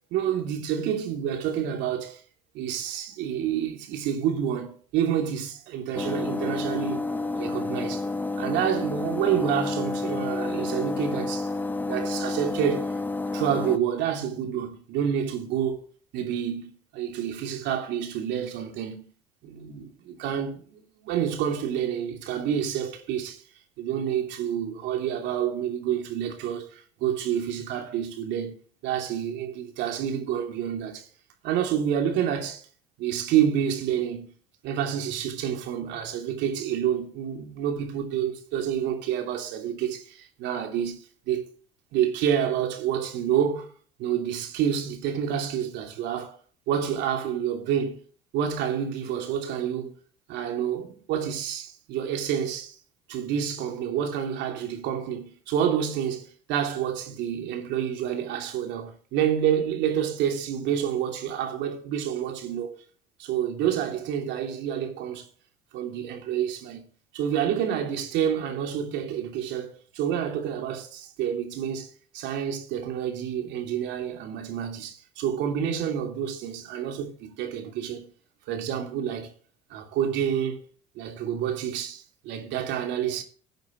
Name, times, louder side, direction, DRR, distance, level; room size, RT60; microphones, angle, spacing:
voice 1, 0.1-2.2 2.5-7.0 7.3-8.1 8.4-11.5 11.8-12.9 13.3-15.8 16.1-19.1 19.4-23.4 23.8-28.5 28.8-31.1 31.4-32.7 33.0-34.3 34.6-41.4 41.9-43.7 44.0-46.4 46.7-48.0 48.3-49.9 50.3-52.8 53.1-62.7 63.2-65.3 65.7-66.8 67.1-78.1 78.5-79.3 79.7-80.6 80.9-83.2, right 9 dB, 65° right, 2.9 m, -28 dB
sound 1, 5.9-13.8, left 3 dB, 10° left, 1.1 m, -30 dB
16.5 x 9.0 x 3.1 m
hypercardioid pair, 75°, 20 cm